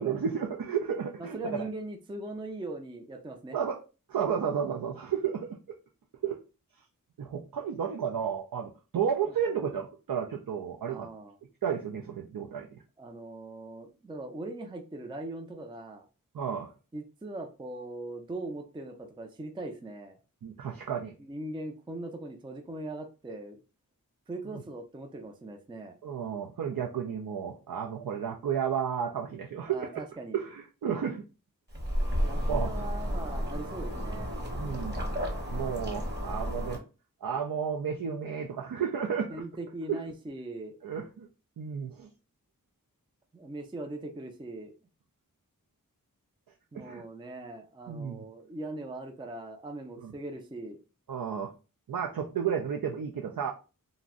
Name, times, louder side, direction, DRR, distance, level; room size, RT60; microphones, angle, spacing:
voice 1, 0.0-1.7 3.5-3.8 4.1-5.6 6.2-6.4 7.2-11.1 11.6-12.8 16.3-16.7 20.4-21.1 24.5-24.6 26.0-30.0 30.3-31.2 32.5-32.7 34.6-34.9 35.5-36.8 37.2-39.4 39.9-40.0 40.8-41.3 41.6-42.1 46.7-47.0 47.9-48.3 50.0-50.1 51.1-51.5 51.9-53.5, right 7 dB, 75° right, 1 dB, 0.5 m, -32 dB
voice 2, 1.2-3.6 10.8-11.4 13.0-16.1 16.9-20.2 21.2-23.6 24.3-25.9 29.7-30.4 32.2-34.3 39.3-40.8 43.3-44.7 46.7-50.8, right 2 dB, 15° right, 4 dB, 0.4 m, -40 dB
sound 1, 31.7-36.8, equal, 30° right, 0.9 m, -32 dB
2.5 x 2.1 x 3.6 m, 0.32 s
wide cardioid pair, 60°, 35 cm